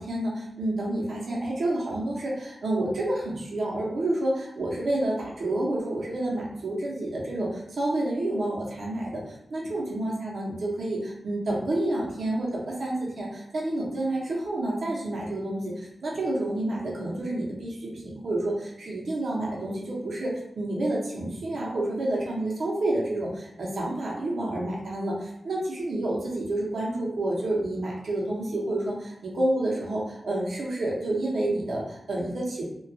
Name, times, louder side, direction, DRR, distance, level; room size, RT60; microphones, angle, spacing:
voice 1, 0.0-15.7 16.0-32.6, right 1 dB, 80° right, -3 dB, 0.6 m, -29 dB
2.2 x 2.2 x 2.6 m, 0.81 s
cardioid pair, 60°, 0 cm